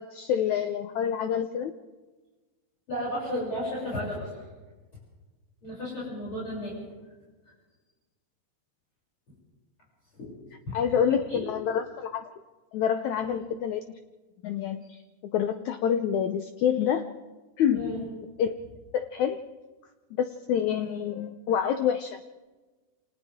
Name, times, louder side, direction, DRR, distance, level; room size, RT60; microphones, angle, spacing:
voice 1, 0.0-1.7 10.7-12.3 12.7-14.0 14.4-17.1 17.6-17.9 18.4-18.5 18.9-19.4 20.1-22.2, left 8 dB, 90° left, 8 dB, 1.6 m, -27 dB
voice 2, 2.9-4.3 5.6-6.7 10.1-10.3 10.7-11.4 13.2-13.3 17.7-18.0, left 1 dB, 35° left, -8 dB, 7.7 m, -33 dB
29.0 x 27.0 x 3.6 m, 1.3 s
omnidirectional pair, 4.3 m